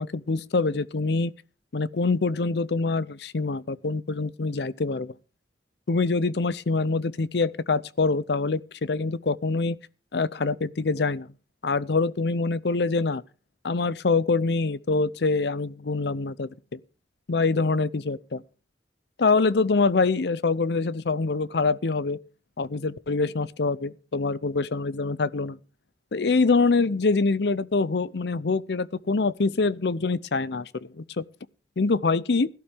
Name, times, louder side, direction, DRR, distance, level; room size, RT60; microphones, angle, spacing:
voice 1, 0.0-1.3 1.7-5.1 5.9-9.8 10.1-11.3 11.6-13.2 13.6-16.8 17.3-18.4 19.2-22.2 22.6-25.6 26.1-30.7 30.9-31.2 31.8-32.5, left 3 dB, 70° left, 0.6 m, -25 dB
17.0 x 12.0 x 3.5 m
head